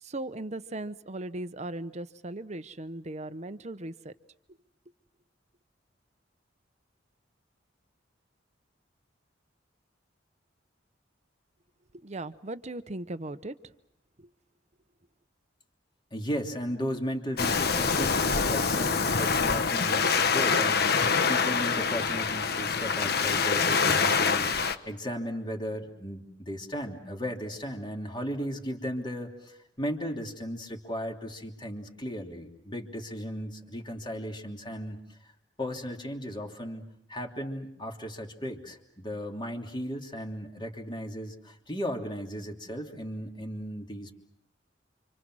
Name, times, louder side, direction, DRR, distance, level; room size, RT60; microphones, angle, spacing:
voice 1, 0.0-4.1 11.9-13.5 14.2-14.3, right 2 dB, 35° right, 13 dB, 0.9 m, -38 dB
voice 2, 16.1-35.2 35.6-44.1, equal, 25° left, 2 dB, 3.2 m, -36 dB
Waves surf, 17.4-24.7, left 5 dB, 55° left, 1.3 m, -25 dB
29.5 x 26.0 x 6.3 m, 0.77 s
head